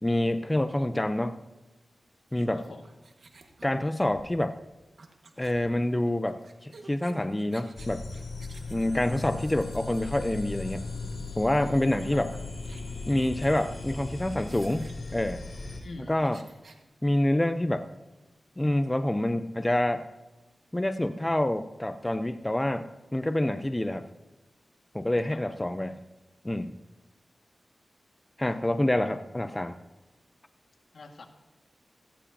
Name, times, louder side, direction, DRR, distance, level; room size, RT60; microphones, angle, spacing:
voice 1, 0.0-1.4 2.3-2.6 3.6-4.6 5.4-8.1 8.7-10.8 11.4-12.3 13.1-15.4 16.1-16.4 17.0-17.9 18.6-20.1 20.7-24.1 24.9-26.0 26.4-26.8 28.4-29.8, left 1 dB, 15° left, 9 dB, 0.6 m, -27 dB
sound 1, 2.3-10.3 11.1-11.3 11.6-11.7 12.0-16.8, right 3 dB, 70° right, 1.5 m, -54 dB
voice 2, 2.5-2.9 12.0-12.2 15.8-16.2 25.3-25.6 30.9-31.2, left 3 dB, 75° left, 3 dB, 1.7 m, -45 dB
sound 2, 7.8-15.8, left 3 dB, 60° left, 3.8 m, -37 dB
17.5 x 14.5 x 2.7 m, 1.1 s
wide cardioid pair, 75°, 0 cm